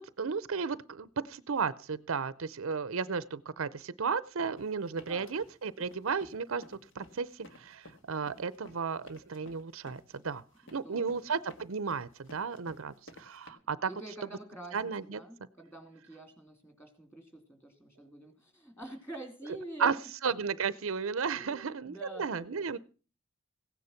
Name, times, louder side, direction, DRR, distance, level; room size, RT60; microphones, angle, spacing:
voice 1, 0.0-10.4 10.7-13.9 14.7-15.2 19.8-19.9 20.2-22.8, right 5 dB, 70° right, 18 dB, 0.6 m, -34 dB
sound 1, 4.6-13.5, left 1 dB, 60° left, 1.9 m, -54 dB
voice 2, 4.9-5.3 10.7-11.2 13.9-20.1 21.3-22.8, right 2 dB, 10° left, 7 dB, 3.1 m, -47 dB
16.5 x 9.6 x 5.8 m, 0.36 s
head